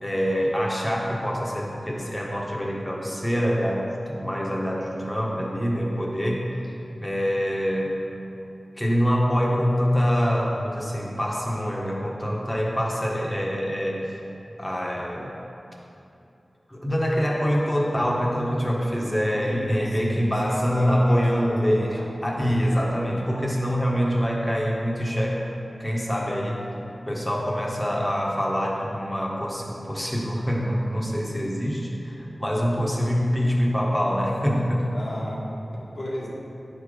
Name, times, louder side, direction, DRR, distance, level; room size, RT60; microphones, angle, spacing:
voice 1, 0.0-6.5 7.0-7.9 8.8-14.1 14.6-15.3 16.7-25.4 25.8-26.6 27.0-34.9, equal, 15° left, -3 dB, 1.5 m, -25 dB
voice 2, 19.4-22.0 34.9-35.4 35.9-36.3, left 1 dB, 60° left, -6 dB, 1.9 m, -34 dB
10.0 x 4.2 x 5.0 m, 2.9 s
wide cardioid pair, 50°, 0 cm